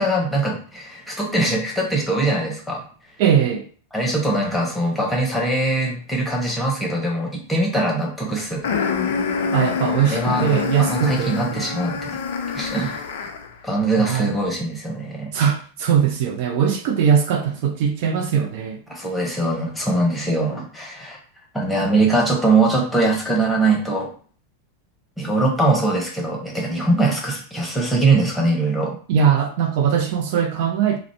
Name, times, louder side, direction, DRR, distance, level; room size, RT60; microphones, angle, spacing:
voice 1, 0.0-2.8 3.9-8.7 10.0-12.1 12.5-13.0 13.6-15.3 18.9-21.2 21.5-24.1 25.2-29.0, right 2 dB, 5° left, 0.8 m, -22 dB
voice 2, 3.2-3.6 9.5-11.9 14.0-14.3 15.3-18.8 29.1-31.0, right 8 dB, 50° right, 0.3 m, -20 dB
sound 1, 8.6-13.5, left 6 dB, 55° left, 0.3 m, -26 dB
2.4 x 2.0 x 3.2 m
figure-of-eight pair, 90°, 0 cm